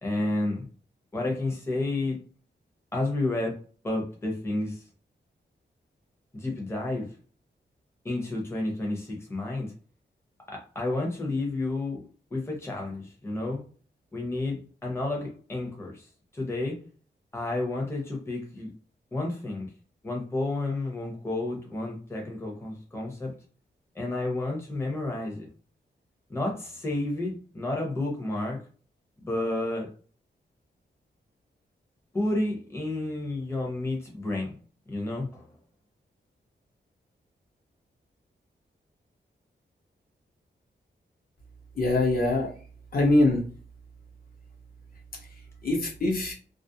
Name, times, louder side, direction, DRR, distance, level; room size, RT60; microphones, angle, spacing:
voice 1, 0.0-0.7 1.1-2.2 2.9-3.6 3.8-4.8 6.3-7.1 8.0-9.7 10.7-12.0 12.3-13.6 14.1-16.1 16.3-16.8 17.3-18.7 19.1-19.7 20.0-23.3 23.9-25.5 26.3-28.6 29.2-29.9 32.1-34.5 34.9-35.5, left 2 dB, 15° left, -1 dB, 0.7 m, -31 dB
voice 2, 41.8-42.5 42.9-43.4 45.6-46.3, left 2 dB, 50° left, 0 dB, 0.8 m, -23 dB
2.4 x 2.0 x 2.7 m, 0.40 s
wide cardioid pair, 115°, 19 cm